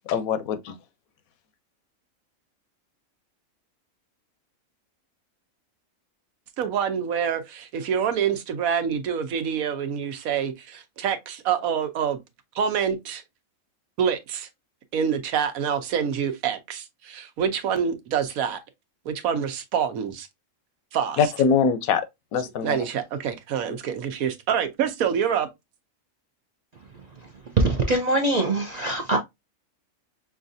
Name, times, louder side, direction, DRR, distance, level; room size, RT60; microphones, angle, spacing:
voice 1, 0.1-0.7 21.2-22.1 22.3-22.8, left 6 dB, 80° left, 1.1 m, -23 dB
voice 2, 6.6-12.2 12.5-13.2 14.0-14.5 14.9-18.6 19.0-20.3 20.9-21.2 22.6-25.5, right 8 dB, 85° right, 1.2 m, -26 dB
voice 3, 27.6-29.2, right 2 dB, 55° right, 0.4 m, -22 dB
5.5 x 2.4 x 2.6 m
omnidirectional pair, 1.4 m